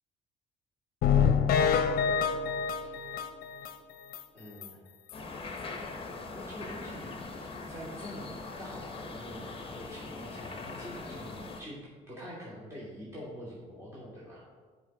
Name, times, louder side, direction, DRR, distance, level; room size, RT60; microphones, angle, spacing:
sound 1, 1.0-3.7 4.1-4.2 4.6-4.7 5.1-5.2, left 7 dB, 65° left, 0.7 m, -26 dB
voice 1, 4.3-4.8 6.3-8.3 8.6-14.4, equal, 15° right, -9 dB, 2.5 m, -45 dB
sound 2, 5.1-11.6, left 3 dB, 35° left, 1.1 m, -41 dB
9.2 x 5.2 x 4.3 m, 1.5 s
cardioid pair, 110°, 17 cm